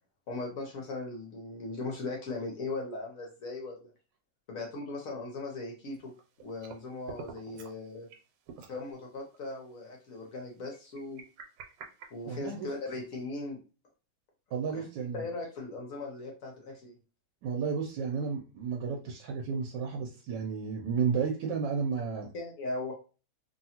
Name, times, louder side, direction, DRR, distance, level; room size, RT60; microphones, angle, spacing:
voice 1, 0.3-3.9 4.5-6.1 6.4-8.1 8.7-11.2 12.1-13.6 14.7-14.8 15.1-17.0 22.3-22.9, left 3 dB, 65° left, 0 dB, 0.9 m, -38 dB
sound 1, 5.9-7.8 8.1-8.2 8.5-8.8 9.3-9.4 10.7-12.8, right 6 dB, 85° right, 1.5 m, -47 dB
voice 2, 12.3-12.7 14.5-15.2 17.4-22.3, right 6 dB, 70° right, 1 dB, 1.2 m, -32 dB
2.9 x 2.8 x 2.8 m, 0.34 s
omnidirectional pair, 2.2 m